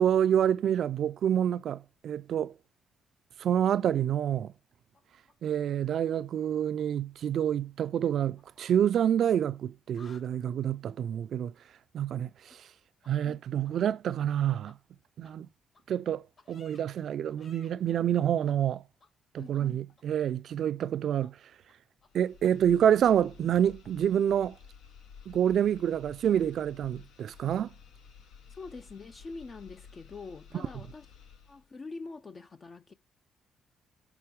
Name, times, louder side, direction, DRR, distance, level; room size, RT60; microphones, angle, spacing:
voice 1, 0.0-2.5 3.4-4.5 5.4-11.5 11.9-12.7 13.1-14.8 15.2-15.5 15.9-18.8 19.3-21.4 22.1-24.6 25.3-27.7, right 9 dB, 65° right, 0.3 m, -27 dB
sound 1, 4.9-6.5 6.7-7.0 8.0-9.6 9.8-10.3 13.0-13.1 13.6-13.7 14.2-14.3 14.6-14.7 15.2-15.3 15.7-15.8 16.4-16.8 17.3-17.7 18.5-18.6 19.0-19.1 19.5-19.6 20.0-20.5 20.8-20.9 21.2-21.3 21.7-21.8 22.0-22.1 22.4-22.5, left 4 dB, 55° left, 2.3 m, -59 dB
voice 2, 19.4-19.8 28.5-31.1 31.5-32.9, left 3 dB, 35° left, 0.4 m, -44 dB
sound 2, 22.0-31.7, left 6 dB, 85° left, 0.8 m, -53 dB
6.0 x 3.5 x 4.7 m
cardioid pair, 90°, 0 cm